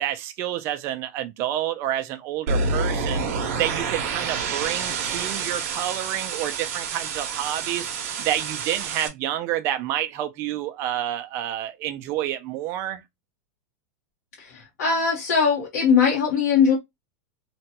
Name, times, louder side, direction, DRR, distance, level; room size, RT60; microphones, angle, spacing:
voice 1, 0.0-3.3 3.5-7.9 8.2-13.0, right 12 dB, 30° right, 0.3 m, -29 dB
sound 1, 2.5-9.1, right 4 dB, 55° right, 0.7 m, -28 dB
voice 2, 14.8-16.7, left 6 dB, 85° left, 1.1 m, -20 dB
3.0 x 2.2 x 2.8 m
supercardioid pair, 160°, 9 cm